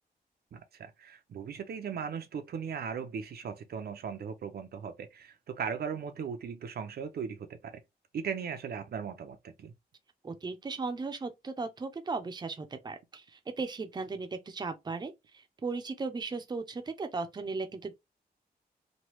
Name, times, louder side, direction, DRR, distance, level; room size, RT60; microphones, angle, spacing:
voice 1, 0.5-7.8 8.1-9.7, right 6 dB, 75° right, 0.5 m, -38 dB
voice 2, 10.2-17.9, right 4 dB, 25° right, 0.5 m, -37 dB
3.1 x 2.2 x 2.9 m
wide cardioid pair, 135°, 16 cm